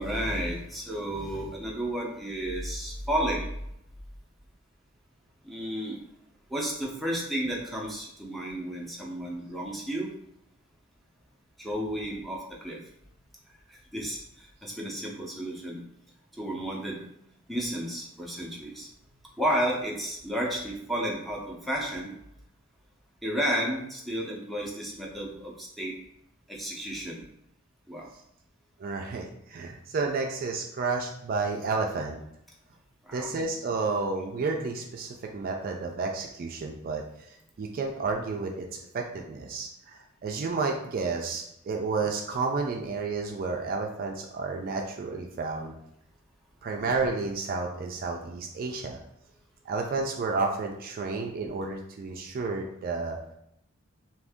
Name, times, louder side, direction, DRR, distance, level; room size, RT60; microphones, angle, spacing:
voice 1, 0.0-3.5 5.4-6.0 6.5-10.1 11.6-12.8 13.7-15.8 16.4-17.0 17.5-18.9 19.4-22.1 23.2-26.0 26.5-27.2 27.9-28.1 33.1-33.3, equal, ahead, -3 dB, 0.6 m, -32 dB
voice 2, 28.8-32.2 33.1-37.0 37.6-45.7 46.6-49.0 49.7-53.2, right 4 dB, 45° right, 2 dB, 0.3 m, -31 dB
2.7 x 2.5 x 3.5 m, 0.78 s
head